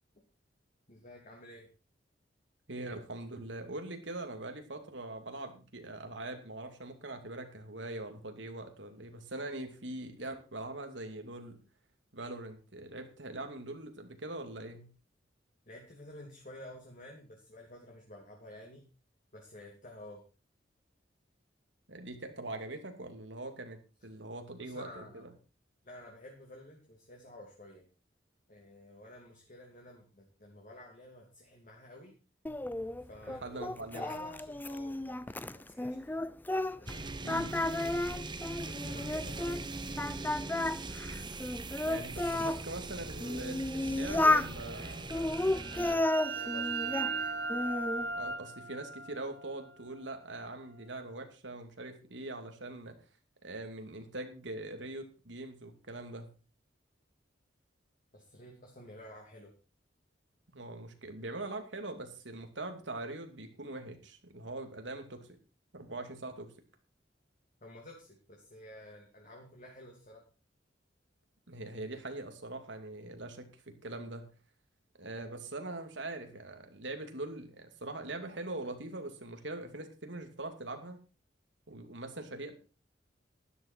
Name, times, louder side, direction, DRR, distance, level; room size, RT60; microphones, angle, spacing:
voice 1, 0.9-1.7 15.6-18.8 19.3-20.3 24.6-25.3 25.8-27.9 28.5-32.1 33.1-36.2 36.8-38.1 38.5-39.6 45.1-47.5 58.1-59.6 67.6-70.2, left 1 dB, 45° left, -1 dB, 3.0 m, -52 dB
voice 2, 2.7-11.6 12.1-14.9 21.9-25.3 33.3-34.1 37.2-37.5 41.8-45.1 45.7-46.1 48.1-53.0 53.4-56.3 60.5-65.3 65.7-66.5 71.5-74.3 75.0-81.0 81.7-82.5, right 2 dB, 85° right, 5 dB, 2.6 m, -42 dB
Singing, 32.5-37.0 37.3-39.6 40.0-42.6 43.2-44.5 45.1-47.1 47.5-48.1, left 2 dB, 10° left, 0.5 m, -32 dB
sound 1, 36.9-45.9, right 2 dB, 25° right, 1.0 m, -41 dB
sound 2, 45.4-50.8, right 4 dB, 65° right, 2.8 m, -38 dB
12.5 x 11.5 x 4.5 m, 0.33 s
head